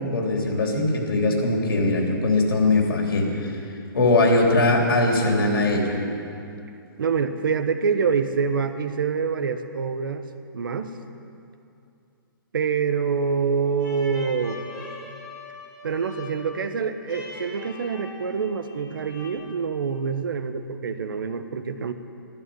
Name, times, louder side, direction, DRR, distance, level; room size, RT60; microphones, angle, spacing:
voice 1, 0.1-3.5 3.9-6.0, left 2 dB, 85° left, 1 dB, 3.5 m, -21 dB
voice 2, 7.0-10.2 10.5-11.0 12.5-14.6 15.8-21.9, right 5 dB, 70° right, 9 dB, 1.1 m, -26 dB
sound 1, 13.8-19.3, left 1 dB, 15° left, 2.4 m, -41 dB
14.0 x 13.0 x 7.0 m, 2.6 s
hypercardioid pair, 175°, 12 cm